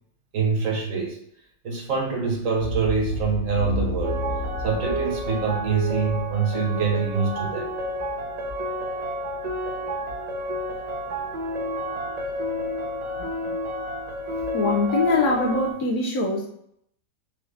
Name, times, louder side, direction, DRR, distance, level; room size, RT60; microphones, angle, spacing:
voice 1, 0.3-1.2 1.6-4.2 4.6-7.7 13.2-13.3, right 5 dB, 55° right, -1 dB, 1.3 m, -25 dB
sound 1, 2.6-6.8 7.4-8.1, equal, 40° right, 1.6 m, -32 dB
sound 2, 4.0-15.7, equal, 80° right, 0.3 m, -30 dB
voice 2, 14.5-16.5, left 3 dB, 75° left, -1 dB, 1.2 m, -23 dB
4.7 x 2.6 x 3.2 m, 0.69 s
omnidirectional pair, 1.7 m